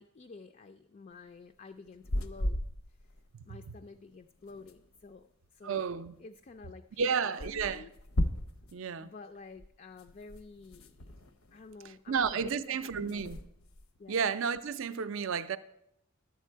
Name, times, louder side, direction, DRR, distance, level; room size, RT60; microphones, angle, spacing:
voice 1, 0.0-2.6 2.9-3.1 3.5-5.9 6.2-7.9 9.0-11.1 11.5-13.5 14.0-14.2, left 4 dB, 35° left, 0.3 m, -50 dB
Blankets on off bed, 1.9-3.3 3.5-3.6 3.8-3.9 4.1-5.2 6.2-6.3 6.6-6.7 7.4-8.8 9.5-11.9 12.2-12.6 12.9-14.1, equal, 70° left, 0.7 m, -37 dB
voice 2, 5.6-6.1 7.0-7.8 8.7-9.1 12.1-13.4 14.1-15.6, right 6 dB, 65° right, 0.5 m, -32 dB
11.0 x 8.3 x 4.5 m
head